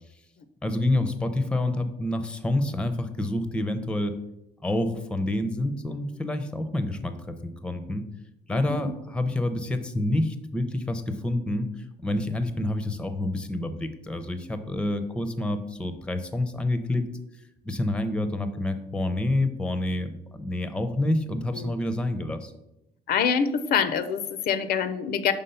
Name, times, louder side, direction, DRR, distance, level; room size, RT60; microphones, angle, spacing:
voice 1, 0.6-4.2 4.6-8.0 8.5-11.7 12.0-17.1 17.6-22.5, left 1 dB, 5° left, 9 dB, 0.5 m, -28 dB
voice 2, 8.5-8.8 21.5-21.7 23.1-25.3, left 7 dB, 65° left, 12 dB, 0.5 m, -25 dB
5.6 x 3.5 x 5.5 m, 0.88 s
cardioid pair, 110°, 17 cm